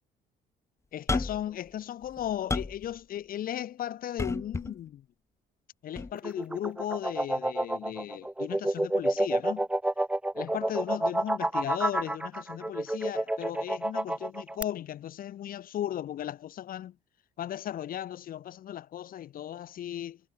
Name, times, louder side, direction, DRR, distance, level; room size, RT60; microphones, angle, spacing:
voice 1, 0.9-5.0 5.8-9.7 10.3-16.9 17.4-20.2, left 11 dB, 55° left, 1.9 m, -36 dB
sound 1, 1.1-1.5 2.0-2.8 4.2-4.7 6.0-6.1, left 3 dB, 15° left, 1.5 m, -31 dB
sound 2, 6.1-14.6, right 1 dB, 5° right, 1.0 m, -29 dB
cardioid pair, 110°, 17 cm